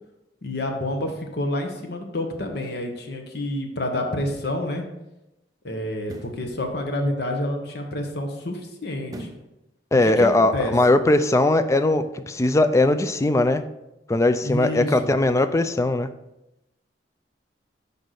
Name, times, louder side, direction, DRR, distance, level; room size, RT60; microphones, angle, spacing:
voice 1, 0.4-4.8 5.6-9.3 10.2-10.7 14.4-15.1, left 1 dB, 65° left, 4 dB, 1.0 m, -28 dB
sound 1, 6.0-6.5 9.1-9.5 10.0-10.1, right 1 dB, 20° right, 0.7 m, -39 dB
voice 2, 9.9-13.6 14.1-16.1, left 2 dB, 15° left, 9 dB, 0.3 m, -20 dB
6.3 x 5.2 x 4.0 m, 0.92 s
head